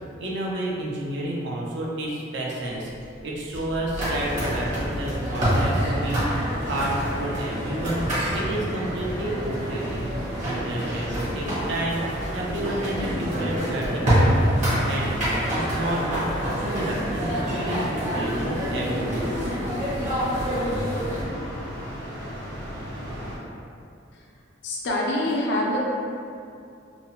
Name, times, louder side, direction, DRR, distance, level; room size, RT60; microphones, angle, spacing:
voice 1, 0.2-2.9 3.2-6.2 6.6-8.0 8.3-10.0 10.4-12.0 12.3-14.5 14.8-16.3 16.6-19.4, right 1 dB, 65° right, -4 dB, 0.5 m, -30 dB
sound 1, 2.9-7.7, equal, 10° right, 0.5 m, -39 dB
sound 2, 3.9-21.2, equal, 40° right, 0.8 m, -27 dB
sound 3, 5.8-23.4, equal, 80° right, 0.8 m, -36 dB
voice 2, 24.6-25.8, left 1 dB, 65° left, -3 dB, 0.5 m, -25 dB
2.6 x 2.1 x 2.8 m, 2.5 s
head